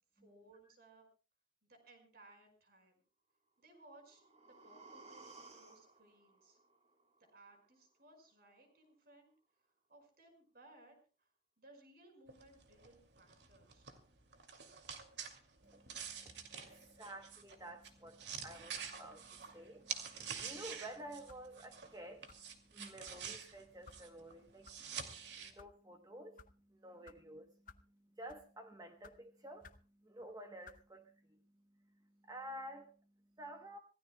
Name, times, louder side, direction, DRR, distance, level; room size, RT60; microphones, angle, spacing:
voice 1, 0.2-1.1 1.7-3.0 3.6-6.6 7.2-9.3 9.9-11.0 11.6-13.9, right 2 dB, 55° right, 5.4 m, -63 dB
sound 1, 3.7-7.7 8.1-8.2, right 3 dB, 35° right, 2.7 m, -59 dB
sound 2, 12.3-22.0 22.2-25.5, right 7 dB, 75° right, 2.4 m, -47 dB
voice 2, 15.6-33.8, right 1 dB, 20° right, 1.0 m, -52 dB
sound 3, 20.4-20.6 21.3-21.6 22.3-22.4 23.0-23.2 23.8-24.0 24.6-24.8 25.4-25.7 26.4-26.5 27.0-27.2 27.7-27.9 28.3-28.5 29.0-29.2 29.6-29.9 30.6-30.8, left 5 dB, 45° left, 0.7 m, -59 dB
26.0 x 16.5 x 2.3 m
head